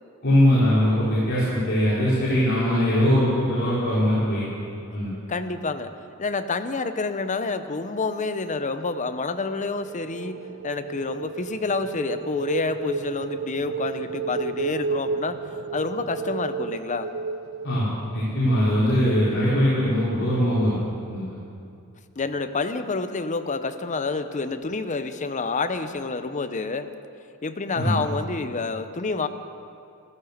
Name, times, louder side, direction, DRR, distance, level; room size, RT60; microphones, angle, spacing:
voice 1, 0.2-4.4 4.9-5.1 17.6-20.8 21.1-21.3 27.8-28.0, equal, 50° left, -11 dB, 4.2 m, -21 dB
voice 2, 5.3-5.9 6.2-10.4 10.6-15.4 15.7-17.1 22.2-26.9 27.4-29.3, left 3 dB, 35° left, 9 dB, 0.8 m, -28 dB
sound 1, 9.5-18.4, right 4 dB, 50° right, 0.4 m, -32 dB
14.5 x 14.0 x 6.6 m, 2.5 s
head